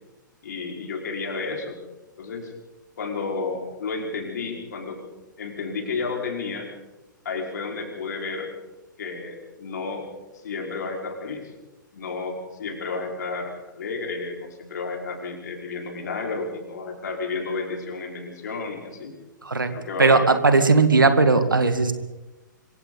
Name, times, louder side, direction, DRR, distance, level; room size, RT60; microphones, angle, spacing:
voice 1, 0.4-1.8 2.2-2.5 3.0-5.0 5.4-6.7 7.3-8.5 9.0-10.1 10.4-11.5 11.9-19.1 19.7-20.3, left 4 dB, 60° left, 0 dB, 5.2 m, -31 dB
voice 2, 20.0-21.9, right 3 dB, 80° right, 9 dB, 2.2 m, -17 dB
25.5 x 24.5 x 4.1 m, 1.1 s
figure-of-eight pair, 115°, 11 cm